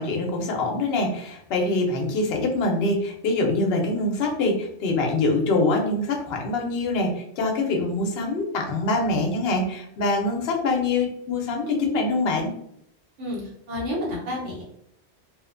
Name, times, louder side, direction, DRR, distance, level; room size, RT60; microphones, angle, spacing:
voice 1, 0.0-12.5, left 2 dB, 65° left, 2 dB, 0.8 m, -24 dB
voice 2, 13.7-14.6, left 1 dB, 75° right, -4 dB, 1.2 m, -29 dB
2.6 x 2.1 x 2.5 m, 0.72 s
omnidirectional pair, 1.2 m